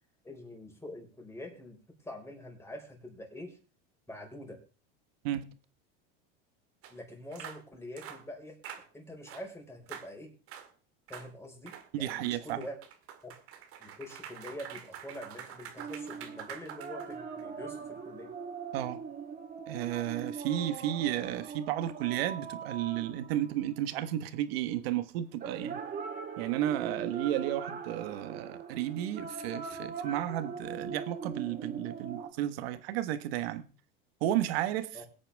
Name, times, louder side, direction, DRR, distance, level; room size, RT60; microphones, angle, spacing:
voice 1, 0.2-3.6 4.1-4.6 6.9-8.6 8.9-10.3 11.1-12.8 13.2-13.3 13.8-18.4 34.9-35.0, left 1 dB, 10° left, 1 dB, 4.7 m, -45 dB
sound 1, 6.8-6.9 7.3-7.6 8.0-8.2 8.6-8.9 9.3-9.5 9.9-10.1 10.5-10.7 11.1-11.3 11.7-17.4, right 9 dB, 50° right, 2.0 m, -46 dB
voice 2, 11.9-12.6 18.7-19.0 19.7-25.8 26.4-33.6 34.2-35.0, right 12 dB, 80° right, 12 dB, 1.4 m, -33 dB
sound 2, 15.8-24.0 25.4-32.3, right 5 dB, 30° right, 2.5 m, -41 dB
22.0 x 8.8 x 3.5 m, 0.35 s
supercardioid pair, 120°, 30 cm